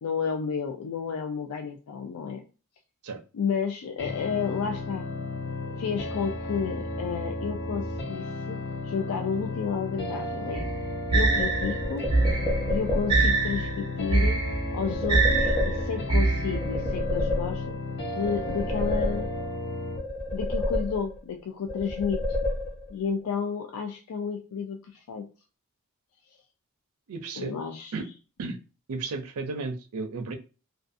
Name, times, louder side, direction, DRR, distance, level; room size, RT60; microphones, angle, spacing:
voice 1, 0.0-2.4 3.3-5.1 5.7-8.6 8.8-10.7 11.1-12.1 12.7-14.4 14.7-17.7 18.1-19.3 20.3-22.2 22.9-25.3 26.3-26.4 27.4-27.9, left 6 dB, 85° left, 3 dB, 0.4 m, -31 dB
sound 1, 4.0-20.0, left 2 dB, 50° left, 0.6 m, -34 dB
sound 2, 10.5-16.9, right 3 dB, 20° right, 0.5 m, -25 dB
sound 3, 11.4-13.4 14.8-16.2 16.5-17.9 18.2-19.6 20.0-21.3 21.7-23.0, left 1 dB, 15° left, 0.9 m, -30 dB
voice 2, 27.1-27.6 27.9-28.1 28.4-28.6 28.9-30.3, right 3 dB, 85° right, 7 dB, 0.5 m, -33 dB
2.4 x 2.3 x 2.5 m, 0.34 s
head